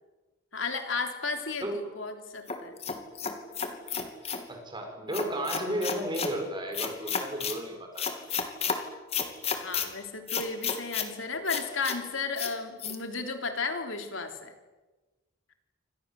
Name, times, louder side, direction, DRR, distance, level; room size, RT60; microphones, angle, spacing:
voice 1, 0.5-2.7 9.5-14.5, left 4 dB, 75° left, 5 dB, 3.6 m, -34 dB
sound 1, 2.5-4.4 5.1-6.3 6.7-7.6 8.0-8.8 9.1-9.9 10.3-11.1 11.5-12.0 12.4-12.5 12.8-13.0, left 6 dB, 30° left, 2.9 m, -31 dB
voice 2, 4.5-8.3, right 1 dB, 20° right, 3 dB, 6.7 m, -33 dB
28.5 x 26.0 x 7.8 m, 1.2 s
head